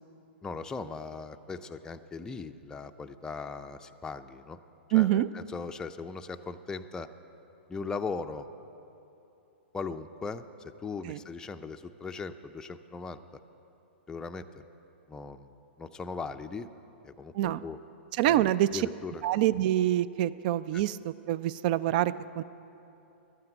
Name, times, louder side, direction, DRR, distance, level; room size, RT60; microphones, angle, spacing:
voice 1, 0.4-4.6 4.9-7.1 7.7-8.5 9.7-13.4 14.1-14.6 15.1-15.5 15.8-16.7 17.0-17.8 18.2-19.2 20.7-20.8, left 4 dB, 10° left, 7 dB, 0.5 m, -39 dB
voice 2, 4.9-5.3 11.0-11.2 17.3-17.6 18.2-18.9 19.2-22.4, right 13 dB, 50° right, 17 dB, 0.4 m, -26 dB
13.0 x 9.3 x 8.0 m, 2.9 s
hypercardioid pair, 120°, 6 cm